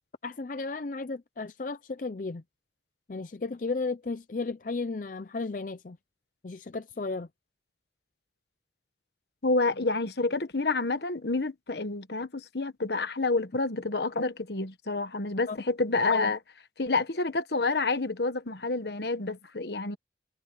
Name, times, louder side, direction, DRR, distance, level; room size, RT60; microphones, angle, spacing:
voice 1, 0.2-2.4 3.1-6.0 6.4-7.3 15.5-15.6, left 3 dB, 45° left, 0.5 m, -34 dB
voice 2, 9.4-16.4 16.8-20.0, left 3 dB, 70° left, 1.3 m, -28 dB
head